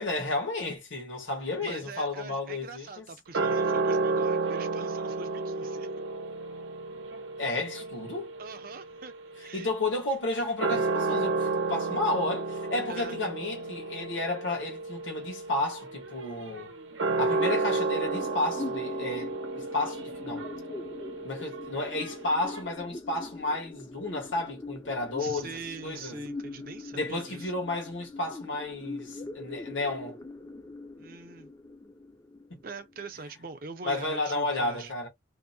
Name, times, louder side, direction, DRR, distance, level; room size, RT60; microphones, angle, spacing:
voice 1, 0.0-3.0 7.4-8.3 9.5-16.7 17.2-20.5 21.2-26.2 26.9-30.2 32.5-32.6 33.8-35.1, left 2 dB, 90° left, 1.2 m, -32 dB
voice 2, 1.6-5.9 8.4-9.7 12.9-13.2 25.2-27.5 31.0-31.5 32.6-34.9, right 4 dB, 50° right, 0.5 m, -43 dB
sound 1, 3.3-10.0 10.5-22.6, right 3 dB, 90° right, 0.7 m, -32 dB
sound 2, 17.2-33.2, left 3 dB, 15° left, 0.3 m, -42 dB
2.7 x 2.1 x 2.6 m
head